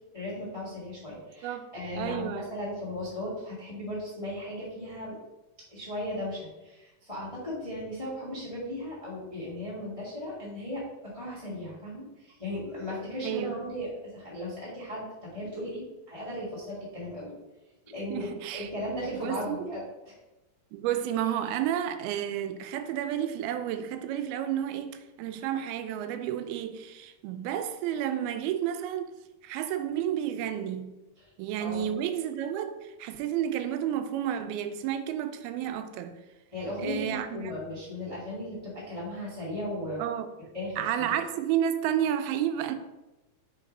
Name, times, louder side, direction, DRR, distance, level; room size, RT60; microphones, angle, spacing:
voice 1, 0.1-5.1 5.7-17.4 17.9-19.8 31.6-31.9 36.5-40.0 40.5-41.2, left 1 dB, 20° left, 0.8 m, -36 dB
voice 2, 2.0-2.5 13.2-13.6 18.1-18.7 19.1-19.7 20.7-29.1 29.4-30.9 31.4-36.2 36.8-37.5 40.0-40.3 40.8-42.8, right 10 dB, 90° right, 2.5 m, -31 dB
4.9 x 4.7 x 5.2 m
omnidirectional pair, 4.3 m